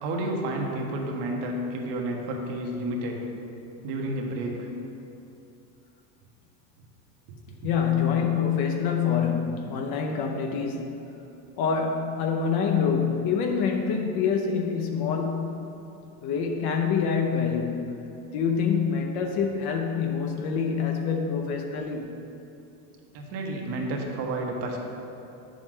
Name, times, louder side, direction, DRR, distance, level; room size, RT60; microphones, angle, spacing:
voice 1, 0.0-3.2 3.8-4.7 23.1-24.8, right 1 dB, 65° right, 0 dB, 1.5 m, -30 dB
voice 2, 7.6-11.0 11.6-15.7 16.2-18.0 18.3-22.2, left 6 dB, 55° left, 2 dB, 0.9 m, -26 dB
9.0 x 7.1 x 3.8 m, 2.8 s
supercardioid pair, 115°, 45 cm